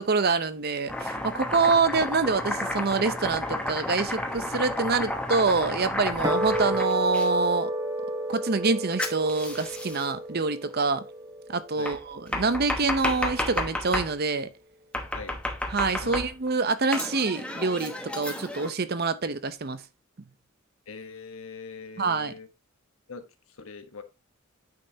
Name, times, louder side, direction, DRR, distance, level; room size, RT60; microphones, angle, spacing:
voice 1, 0.0-7.7 8.3-11.0 11.5-14.5 15.7-19.8 22.0-22.3, right 4 dB, 45° right, 0.7 m, -26 dB
Domestic sounds home sounds, 0.9-7.3 9.0-10.1 11.9-14.1 14.9-16.5 16.9-18.7, left 1 dB, 5° left, 1.0 m, -32 dB
sound 1, 6.2-12.7, right 1 dB, 15° right, 1.4 m, -32 dB
voice 2, 20.9-22.5 23.1-23.3 23.6-24.0, left 4 dB, 70° left, 1.2 m, -41 dB
9.2 x 5.4 x 2.8 m
head